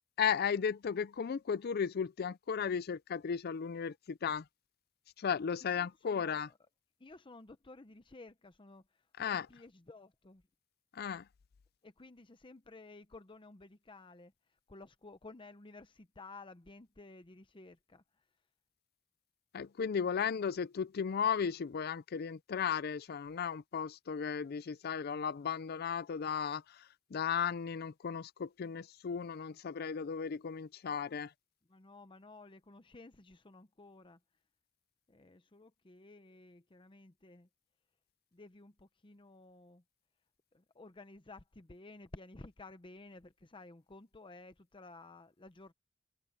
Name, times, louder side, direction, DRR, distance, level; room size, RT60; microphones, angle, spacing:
voice 1, 0.2-4.4 5.2-6.5 9.2-9.5 10.9-11.2 19.5-31.3, left 7 dB, 50° left, 0.4 m, -35 dB
voice 2, 5.8-6.5 7.0-8.8 9.3-10.4 11.8-14.3 14.7-18.0 31.7-34.2 35.1-37.5 38.3-39.8 40.5-45.7, left 2 dB, 25° left, 0.7 m, -54 dB
head